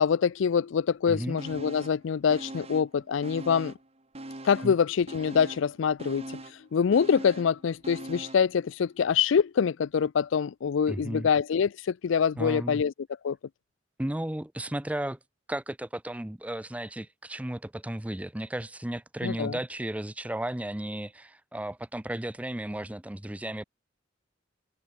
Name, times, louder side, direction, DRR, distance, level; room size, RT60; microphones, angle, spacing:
voice 1, 0.0-3.7 4.4-6.4 6.7-12.9 13.2-13.4 19.2-19.6, left 6 dB, 70° left, 0.4 m, -25 dB
voice 2, 1.1-1.4 4.6-4.7 10.9-11.3 12.4-12.8 14.0-15.2 15.5-23.6, right 1 dB, 5° right, 0.5 m, -34 dB
sound 1, 1.4-2.0 2.3-3.9 4.1-8.5 8.9-9.0, right 1 dB, 30° right, 1.9 m, -42 dB
head